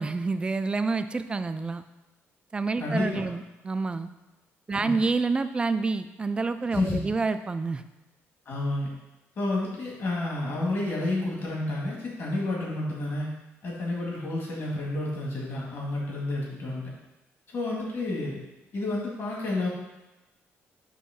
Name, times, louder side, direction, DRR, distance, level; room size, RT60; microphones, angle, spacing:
voice 1, 0.0-1.8 2.5-4.1 4.7-7.8, right 4 dB, 20° right, 10 dB, 0.3 m, -28 dB
voice 2, 2.8-3.2 4.7-4.9 6.7-7.0 8.5-8.9 9.4-13.3 13.6-16.8 17.5-18.4 18.7-19.7, left 2 dB, 50° left, -4 dB, 1.9 m, -30 dB
6.4 x 3.0 x 5.8 m, 1.0 s
cardioid pair, 135°, 5 cm